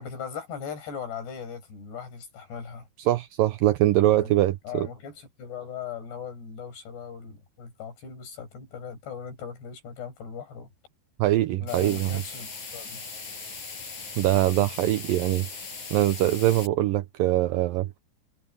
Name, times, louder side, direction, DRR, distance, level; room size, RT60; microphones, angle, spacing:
voice 1, 0.0-2.9 4.1-4.3 4.6-10.7 11.6-12.5 12.7-13.0, left 7 dB, 90° left, 8.4 m, -39 dB
voice 2, 3.1-4.9 11.2-12.2 14.2-15.7 15.9-17.9, right 15 dB, 80° right, 2.0 m, -23 dB
sound 1, 11.7-16.7, left 4 dB, 45° left, 7.7 m, -39 dB
omnidirectional pair, 4.6 m